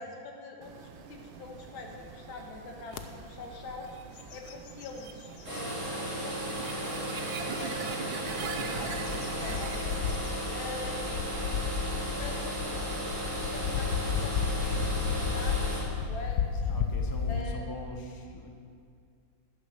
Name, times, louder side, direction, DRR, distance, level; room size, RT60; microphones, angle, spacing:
voice 1, 0.0-4.0 4.3-8.0 8.4-9.8 10.5-11.6 12.0-12.9 13.3-16.7 17.2-17.6, left 3 dB, 85° left, 2 dB, 2.2 m, -45 dB
sound 1, 0.6-10.4, right 6 dB, 80° right, 1.6 m, -43 dB
sound 2, 2.9-3.1 3.6-3.8 4.2-5.7 6.2-6.3 8.1-17.4, left 6 dB, 65° left, 1.2 m, -33 dB
sound 3, 5.4-15.8, right 1 dB, 40° right, 4.2 m, -35 dB
voice 2, 8.4-8.8 16.5-18.5, left 1 dB, 25° left, 2 dB, 0.5 m, -42 dB
11.0 x 10.0 x 6.5 m, 2.3 s
omnidirectional pair, 2.1 m